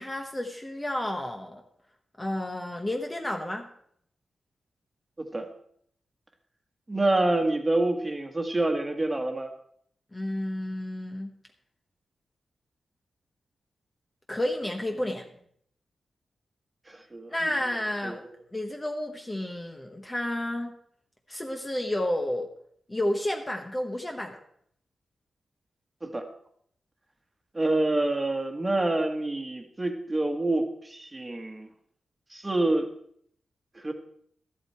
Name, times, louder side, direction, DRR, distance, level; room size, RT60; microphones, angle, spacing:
voice 1, 0.0-1.6 2.2-3.7 10.1-11.3 14.3-15.2 17.3-18.2 18.5-20.7 21.3-22.5 22.9-24.4, left 1 dB, 15° left, 3 dB, 1.1 m, -31 dB
voice 2, 6.9-9.5 16.9-17.5 18.0-18.3 26.0-26.2 27.5-31.7 32.3-32.9 33.7-33.9, right 2 dB, 15° right, 4 dB, 1.6 m, -27 dB
14.0 x 12.0 x 4.4 m, 0.66 s
wide cardioid pair, 155°, 0 cm